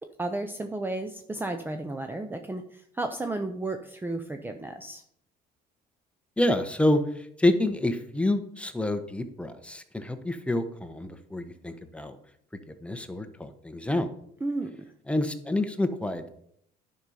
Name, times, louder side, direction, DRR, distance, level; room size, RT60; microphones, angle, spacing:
voice 1, 0.2-5.0 14.4-14.9, right 2 dB, 10° right, 6 dB, 0.7 m, -33 dB
voice 2, 6.4-7.0 7.4-12.2 12.8-14.1 15.1-16.3, left 1 dB, 5° left, 7 dB, 0.9 m, -27 dB
10.5 x 5.4 x 4.9 m, 0.69 s
cardioid pair, 110°, 17 cm